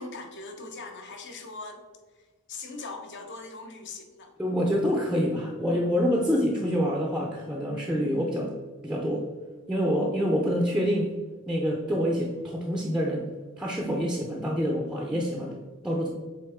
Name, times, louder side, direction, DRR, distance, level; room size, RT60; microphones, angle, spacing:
voice 1, 0.0-1.9 2.1-4.3, left 3 dB, 55° left, 4 dB, 0.9 m, -41 dB
voice 2, 4.4-8.5 8.8-9.2 9.7-11.1 11.5-13.3 13.6-15.5 15.8-16.1, equal, 5° right, -1 dB, 0.5 m, -26 dB
7.8 x 3.5 x 3.6 m, 1.3 s
head